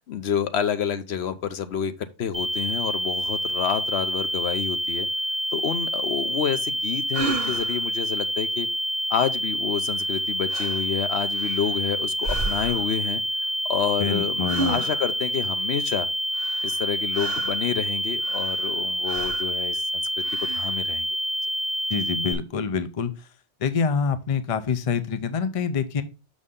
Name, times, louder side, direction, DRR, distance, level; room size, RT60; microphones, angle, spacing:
voice 1, 0.0-5.1 5.5-8.7 9.1-13.2 13.7-16.1 16.6-20.0 20.4-21.1, left 8 dB, 65° left, 11 dB, 0.9 m, -29 dB
sound 1, 2.3-22.3, equal, 30° right, 1.5 m, -27 dB
sound 2, 7.1-7.9 10.0-10.2 10.5-10.9 11.3-11.9 12.2-13.0 14.5-15.2 16.3-17.7 18.2-18.8 19.1-19.6 20.2-20.8, right 3 dB, 55° right, 1.2 m, -32 dB
voice 2, 14.0-14.8 21.9-23.1 23.6-26.0, left 6 dB, 35° left, 11 dB, 0.6 m, -26 dB
6.5 x 6.2 x 3.6 m, 0.29 s
omnidirectional pair, 1.2 m